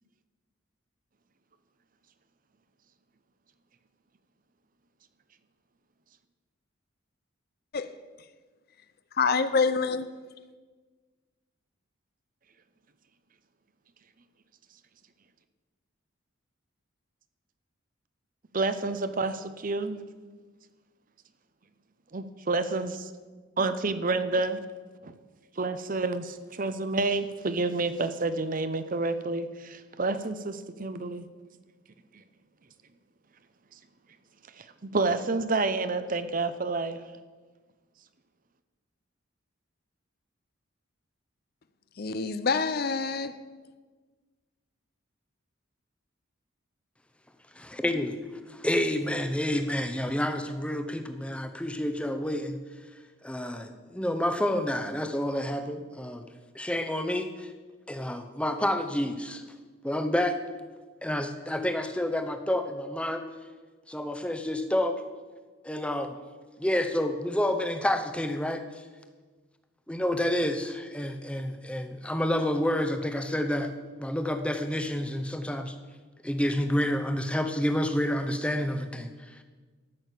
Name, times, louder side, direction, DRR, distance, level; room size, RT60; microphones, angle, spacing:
voice 1, 9.2-10.0 42.0-43.3, left 4 dB, 50° left, 0.6 m, -26 dB
voice 2, 18.5-20.0 22.1-23.1 23.6-24.6 25.0-25.1 25.6-31.3 32.1-32.2 34.6-37.0, right 3 dB, 40° right, 0.7 m, -29 dB
voice 3, 47.6-48.2 48.5-52.6 53.2-56.3 56.5-57.5 57.9-59.4 59.8-60.4 61.0-63.2 63.9-65.0 65.6-66.2 66.6-68.8 69.9-73.7 74.0-75.7 76.2-79.4, left 1 dB, 5° left, 0.8 m, -29 dB
13.5 x 6.4 x 8.3 m
head